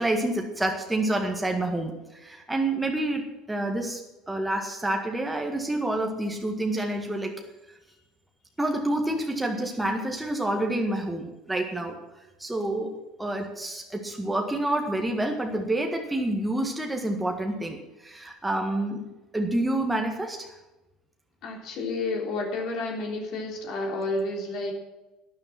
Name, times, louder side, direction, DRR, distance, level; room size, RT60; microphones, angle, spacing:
voice 1, 0.0-7.3 8.6-12.0 12.4-20.5, right 1 dB, 10° right, 2 dB, 1.7 m, -28 dB
voice 2, 21.4-24.7, left 2 dB, 50° left, 0 dB, 3.5 m, -30 dB
12.5 x 10.5 x 5.9 m, 1.1 s
figure-of-eight pair, 65°, 0 cm